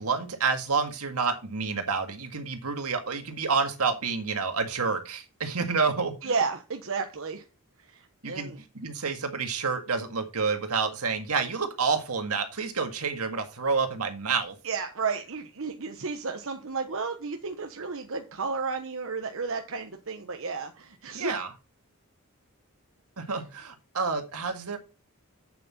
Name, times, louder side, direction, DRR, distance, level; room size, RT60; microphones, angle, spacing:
voice 1, 0.0-6.1 8.2-14.6 21.1-21.5 23.2-24.8, right 5 dB, 85° right, 1.8 m, -29 dB
voice 2, 6.2-7.4 7.9-8.6 14.6-21.4, right 4 dB, 65° right, 1.1 m, -32 dB
8.4 x 7.6 x 4.2 m
head